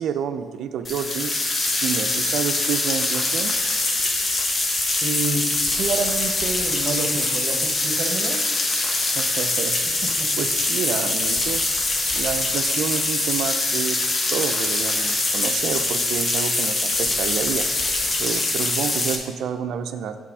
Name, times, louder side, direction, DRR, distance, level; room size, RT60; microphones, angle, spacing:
voice 1, 0.0-1.3 1.8-3.5 8.8-9.8 10.4-11.6 12.1-14.0 14.3-17.7 18.2-20.2, right 8 dB, 75° right, 8 dB, 0.5 m, -29 dB
sound 1, 0.8-19.1, left 2 dB, 40° left, 1.3 m, -23 dB
voice 2, 5.0-8.4 10.0-10.4, right 3 dB, 60° right, 5 dB, 1.1 m, -29 dB
8.9 x 5.8 x 4.8 m, 1.5 s
cardioid pair, 90°, 0 cm